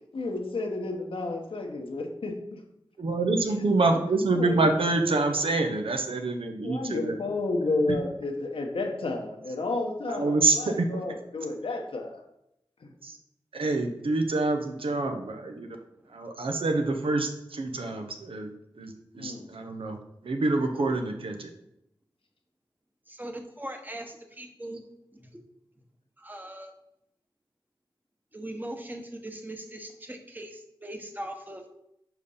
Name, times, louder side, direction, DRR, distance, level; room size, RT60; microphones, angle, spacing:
voice 1, 0.1-2.4 4.3-4.7 6.6-12.2 12.8-12.9 19.2-19.5, left 2 dB, 75° left, 2 dB, 1.1 m, -31 dB
voice 2, 3.0-7.2 7.9-8.0 10.1-10.9 13.0-13.1 13.5-15.7 16.1-18.5 18.8-20.0 20.2-21.5, right 2 dB, 75° right, 4 dB, 0.8 m, -26 dB
voice 3, 23.1-24.8 25.1-25.3 26.2-26.7 28.3-31.6, right 1 dB, 20° right, 3 dB, 1.1 m, -40 dB
5.1 x 4.6 x 5.4 m, 0.80 s
cardioid pair, 50°, 9 cm